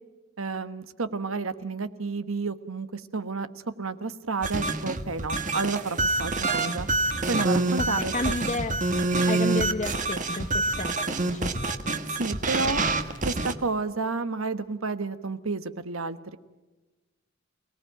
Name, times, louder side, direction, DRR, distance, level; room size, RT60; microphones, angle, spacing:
voice 1, 0.4-6.9 7.3-8.4 12.1-12.9 13.2-16.4, right 3 dB, 85° right, 12 dB, 1.3 m, -31 dB
sound 1, 4.4-13.5, right 2 dB, 40° right, 1.5 m, -27 dB
voice 2, 7.9-8.8 9.3-11.5, left 3 dB, 35° left, 4 dB, 0.9 m, -31 dB
29.0 x 18.5 x 9.1 m, 1.2 s
head